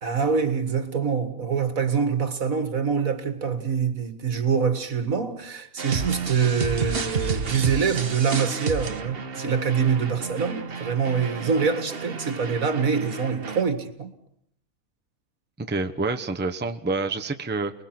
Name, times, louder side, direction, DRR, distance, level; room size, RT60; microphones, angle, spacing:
voice 1, 0.0-14.1, right 6 dB, 65° right, 2.4 m, -25 dB
sound 1, 5.8-13.6, right 5 dB, 45° right, 1.4 m, -31 dB
voice 2, 15.6-17.7, right 3 dB, 10° right, 1.0 m, -27 dB
29.0 x 21.0 x 6.1 m
omnidirectional pair, 1.5 m